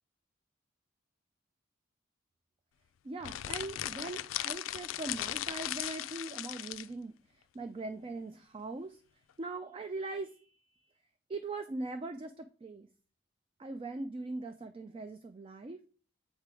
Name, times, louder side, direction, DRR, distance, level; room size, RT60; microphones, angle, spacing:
voice 1, 3.0-7.1 7.5-9.0 9.4-10.5 11.3-12.9 13.6-15.8, right 2 dB, 25° right, 8 dB, 0.3 m, -40 dB
sound 1, 3.2-6.9, left 13 dB, 80° left, 0.3 m, -37 dB
7.4 x 3.4 x 4.7 m, 0.40 s
head